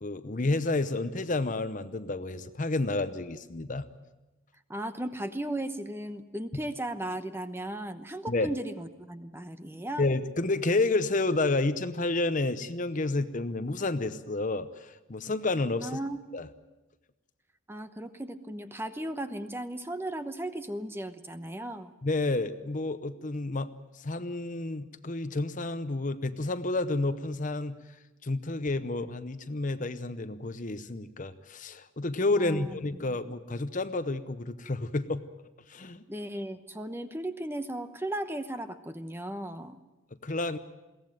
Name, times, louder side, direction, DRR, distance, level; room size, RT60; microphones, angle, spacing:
voice 1, 0.0-3.9 8.3-8.5 10.0-15.9 16.3-16.5 22.0-27.8 28.2-35.2 35.7-36.0 40.2-40.6, left 2 dB, 40° left, 12 dB, 0.8 m, -30 dB
voice 2, 4.7-10.0 15.8-16.2 17.7-21.9 32.4-33.0 36.1-39.8, right 1 dB, 10° right, 10 dB, 0.9 m, -36 dB
22.0 x 17.0 x 9.2 m, 1.1 s
head